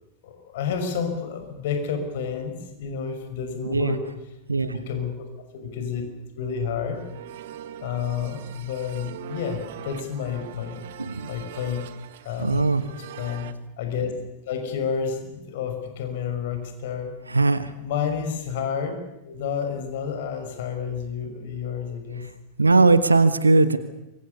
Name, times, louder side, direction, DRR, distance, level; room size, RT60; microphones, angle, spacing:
voice 1, 0.2-4.0 4.6-5.1 5.5-6.1 6.4-7.0 7.8-10.8 11.2-11.8 12.2-12.6 13.2-13.5 13.8-14.1 14.5-17.1 17.8-19.0 19.2-22.2, left 7 dB, 55° left, 6 dB, 6.1 m, -30 dB
voice 2, 3.6-4.0 4.5-4.8 11.0-11.3 12.4-12.8 17.3-17.7 22.2-22.3 22.6-23.8, right 3 dB, 80° right, 14 dB, 1.2 m, -19 dB
sound 1, 6.9-13.5, right 11 dB, 55° right, 1.5 m, -42 dB
28.0 x 24.5 x 6.9 m, 0.93 s
figure-of-eight pair, 90°, 0 cm